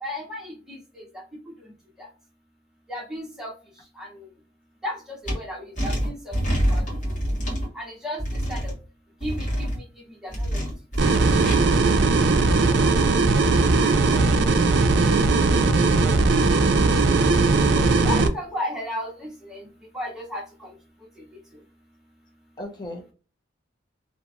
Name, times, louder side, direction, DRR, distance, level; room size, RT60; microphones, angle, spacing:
voice 1, 0.0-1.0 2.0-2.1 2.9-3.5 4.0-4.3 4.8-6.3 6.7-7.0 7.7-8.2 8.5-8.7 9.2-9.8 10.2-10.6 11.0-11.1 17.7-19.6 19.9-20.7 21.2-21.3, left 1 dB, 5° right, -2 dB, 0.8 m, -34 dB
sound 1, 5.3-5.4 5.8-7.7 8.2-8.7 9.2-9.8 10.3-11.6, equal, 40° left, 1.3 m, -26 dB
sound 2, 11.0-18.3, right 3 dB, 60° right, 0.4 m, -19 dB
voice 2, 14.1-14.9 22.6-23.0, left 1 dB, 25° left, 2 dB, 0.5 m, -39 dB
2.9 x 2.4 x 2.4 m, 0.37 s
head